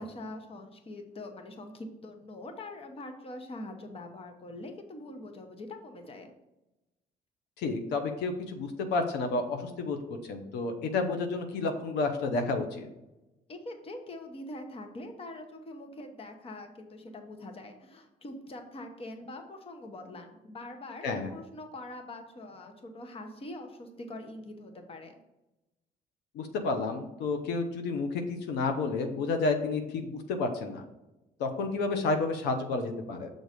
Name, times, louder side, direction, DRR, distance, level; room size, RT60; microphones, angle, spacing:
voice 1, 0.0-6.3 13.5-25.2, left 1 dB, 35° left, 5 dB, 1.1 m, -43 dB
voice 2, 7.6-10.0 10.3-12.9 21.0-21.3 26.3-30.8 31.4-33.3, left 3 dB, 85° left, 6 dB, 0.9 m, -30 dB
6.5 x 3.9 x 5.1 m, 0.97 s
cardioid pair, 110°, 17 cm